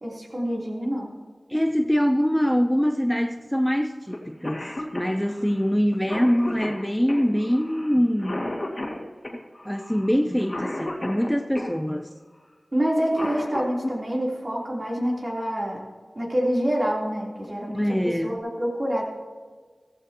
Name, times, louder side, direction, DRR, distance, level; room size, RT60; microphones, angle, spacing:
voice 1, 0.0-1.1 12.7-15.8 16.2-17.8 18.2-19.0, equal, 45° right, -3 dB, 3.5 m, -26 dB
voice 2, 1.5-8.5 9.7-12.1 17.7-18.4, equal, 5° left, 7 dB, 0.6 m, -24 dB
Cough, 4.1-4.2 4.4-11.7 12.9-13.9 15.6-15.7 16.7-17.0 17.4-17.5 17.9-18.4, left 1 dB, 40° left, 2.1 m, -33 dB
15.0 x 14.5 x 3.0 m, 1.5 s
wide cardioid pair, 45°, 0 cm